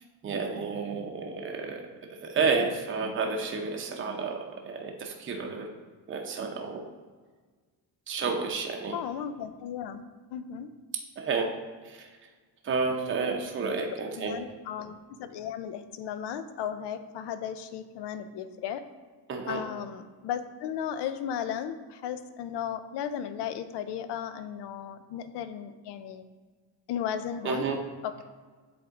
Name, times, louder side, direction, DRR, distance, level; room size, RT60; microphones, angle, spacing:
voice 1, 0.2-5.7 6.1-6.8 8.1-9.0 11.2-11.5 11.8-12.1 12.6-14.3 19.3-19.6 27.4-27.8, right 4 dB, 30° right, 2 dB, 0.7 m, -31 dB
voice 2, 8.9-10.0 10.3-10.7 14.2-18.8 19.5-26.3 26.9-27.7 28.0-28.2, left 9 dB, 70° left, 11 dB, 0.6 m, -35 dB
7.9 x 3.5 x 3.6 m, 1.4 s
cardioid pair, 140°, 42 cm